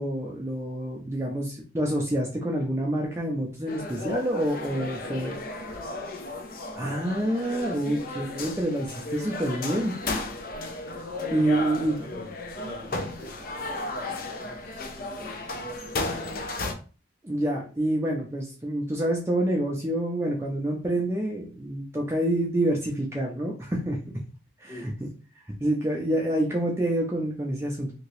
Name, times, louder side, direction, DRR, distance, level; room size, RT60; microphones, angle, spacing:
voice 1, 0.0-5.3 6.7-10.0 11.3-12.2 17.2-24.0 24.6-24.9 25.5-27.9, right 1 dB, 15° right, -2 dB, 0.5 m, -27 dB
sound 1, 3.7-16.7, left 2 dB, 50° left, 0.5 m, -34 dB
voice 2, 4.7-5.6 11.4-12.3 12.5-16.4 17.5-17.9 24.7-24.9, right 1 dB, 20° left, -2 dB, 1.0 m, -46 dB
2.8 x 2.8 x 3.0 m, 0.37 s
head